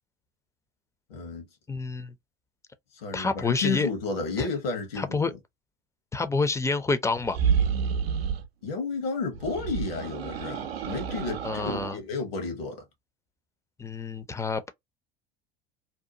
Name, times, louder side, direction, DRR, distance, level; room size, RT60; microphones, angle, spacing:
voice 1, 1.1-1.5 3.0-5.2 8.6-12.8, left 4 dB, 75° left, 1.1 m, -32 dB
voice 2, 1.7-2.1 3.1-3.9 4.4-4.5 5.0-5.3 6.1-7.4 11.4-12.0 13.8-14.7, left 3 dB, 10° left, 0.4 m, -28 dB
sound 1, 7.2-8.5 9.3-12.0, right 7 dB, 85° right, 0.5 m, -29 dB
2.7 x 2.2 x 2.6 m
hypercardioid pair, 70°, 30 cm